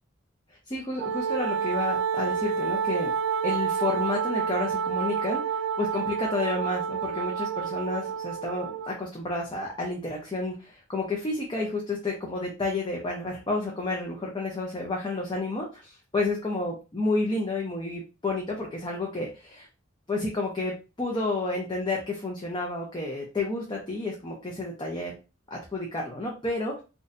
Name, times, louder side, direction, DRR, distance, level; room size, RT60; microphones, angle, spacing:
voice 1, 0.7-3.1 3.4-19.7 20.1-25.1 25.5-26.8, left 2 dB, 25° left, -1 dB, 0.6 m, -31 dB
Wind instrument woodwind instrument, 1.0-9.0, right 7 dB, 85° right, 0.3 m, -29 dB
4.0 x 2.3 x 2.5 m, 0.30 s
head